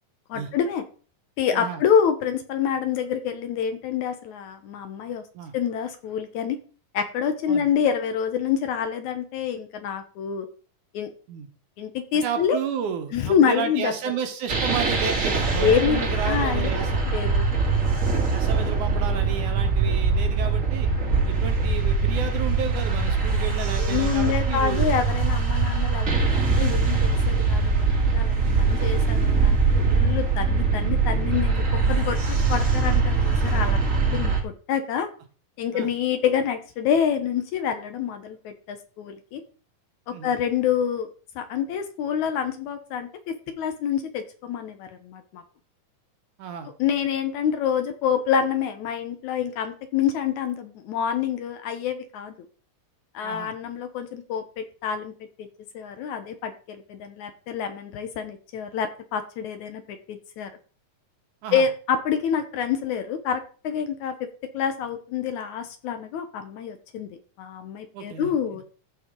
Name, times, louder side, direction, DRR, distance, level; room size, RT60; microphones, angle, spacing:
voice 1, 0.3-0.8 1.4-5.2 5.5-6.6 6.9-10.5 10.9-11.1 11.8-12.6 13.1-13.9 15.6-16.7 17.0-17.5 23.8-26.3 26.6-35.1 35.6-39.4 40.1-41.1 41.4-45.4 46.8-52.3 53.1-55.1 55.4-55.5 55.7-60.5 61.5-64.2 64.5-68.6, left 8 dB, 70° left, 8 dB, 2.1 m, -27 dB
voice 2, 12.1-17.0 18.3-20.9 21.3-25.0 28.4-28.6 35.7-35.9 40.1-40.3 46.4-46.7 53.2-53.5 61.4-61.6 67.9-68.3, right 7 dB, 70° right, 7 dB, 2.4 m, -32 dB
sound 1, 14.5-34.4, right 4 dB, 30° right, 1.5 m, -22 dB
15.0 x 5.8 x 3.7 m, 0.39 s
omnidirectional pair, 3.9 m